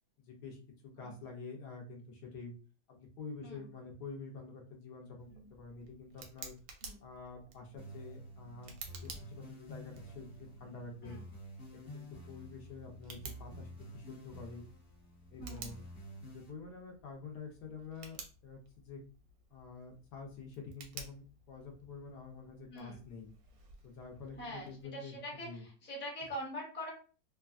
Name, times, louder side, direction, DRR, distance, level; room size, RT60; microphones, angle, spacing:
voice 1, 0.2-0.6 0.8-2.5 2.9-6.5 7.0-11.2 11.7-14.6 15.3-15.8 16.2-19.0 19.5-23.3 23.8-25.6, left 4 dB, 70° left, 1 dB, 1.2 m, -48 dB
Tick, 5.2-24.8, right 4 dB, 70° right, 0.9 m, -54 dB
sound 1, 7.8-16.5, right 1 dB, 40° left, 0.9 m, -50 dB
voice 2, 15.4-15.7 22.7-23.0 24.4-26.9, equal, 10° left, -3 dB, 0.5 m, -44 dB
3.3 x 2.2 x 2.4 m, 0.37 s
omnidirectional pair, 2.0 m